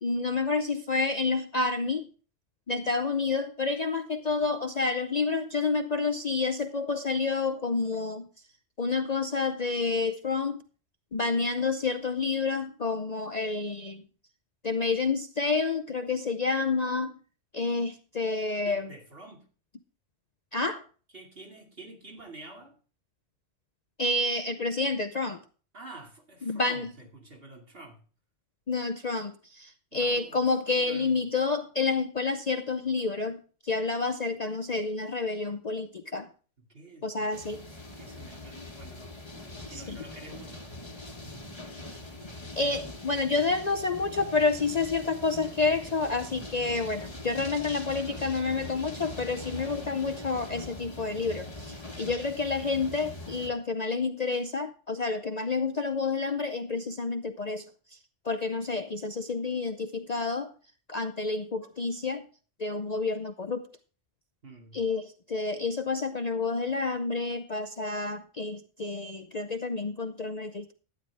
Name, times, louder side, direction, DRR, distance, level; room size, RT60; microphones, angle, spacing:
voice 1, 0.0-2.1 2.7-8.3 8.8-10.6 11.1-14.0 14.6-17.1 17.5-18.9 20.5-20.8 24.0-25.4 26.4-26.9 28.7-36.3 37.0-37.6 39.7-40.0 42.6-57.7 57.9-58.0 58.2-60.5 60.9-62.3 62.6-63.7 64.7-70.7, left 4 dB, 40° left, 0.7 m, -29 dB
voice 2, 18.6-19.5 21.1-22.8 25.7-28.0 29.9-30.4 30.8-31.3 36.6-37.3 38.0-40.7 51.9-52.2 64.4-64.8, right 2 dB, 50° right, 2.7 m, -48 dB
sound 1, 37.3-53.5, left 2 dB, 25° left, 1.3 m, -42 dB
12.0 x 9.7 x 3.4 m
omnidirectional pair, 1.3 m